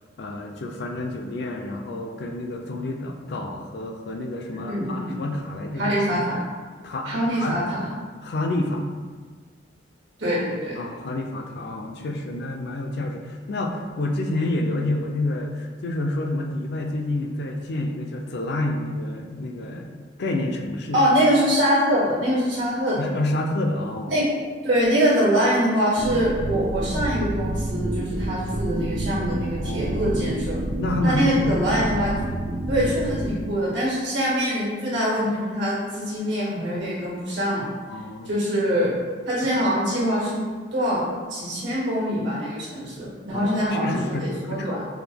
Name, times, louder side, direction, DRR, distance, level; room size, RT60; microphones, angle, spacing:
voice 1, 0.2-6.0 6.8-7.6 8.2-8.8 10.8-21.0 23.0-24.2 29.6-30.1 30.8-31.7 37.9-38.3 43.3-44.8, left 1 dB, 55° left, 3 dB, 0.4 m, -29 dB
voice 2, 4.5-5.1 5.8-6.4 7.0-7.9 10.2-10.8 20.9-23.1 24.1-24.3 24.6-30.6 31.0-32.1 32.7-37.6 38.2-38.9 39.3-40.4 40.7-41.0 41.3-44.8, equal, 70° right, -6 dB, 1.5 m, -23 dB
sound 1, 26.0-33.3, right 1 dB, 45° right, 0.3 m, -28 dB
4.8 x 2.2 x 3.4 m, 1.5 s
head